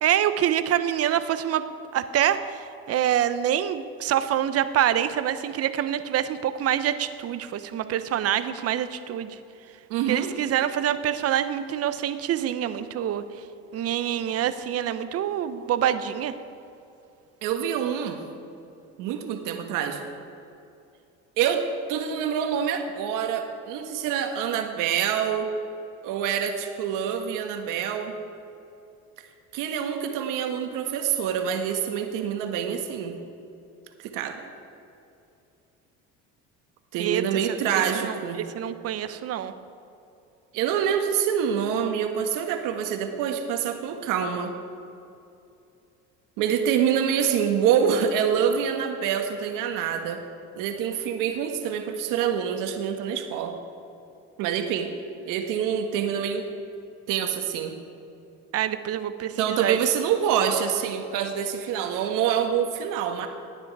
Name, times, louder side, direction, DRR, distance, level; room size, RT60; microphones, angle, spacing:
voice 1, 0.0-1.6 1.9-9.4 10.1-13.2 13.7-16.3 37.0-37.2 37.7-39.5 58.5-59.8, right 10 dB, 50° right, 12 dB, 0.8 m, -26 dB
voice 2, 9.9-10.3 17.4-18.2 19.0-20.0 21.4-25.5 26.0-28.2 29.5-33.2 34.0-34.4 36.9-38.4 40.5-44.5 46.4-50.2 50.6-53.6 54.4-54.9 55.2-56.5 57.1-57.8 59.4-63.3, right 8 dB, 75° right, 5 dB, 1.6 m, -26 dB
16.5 x 9.8 x 4.8 m, 2.7 s
supercardioid pair, 105°, 32 cm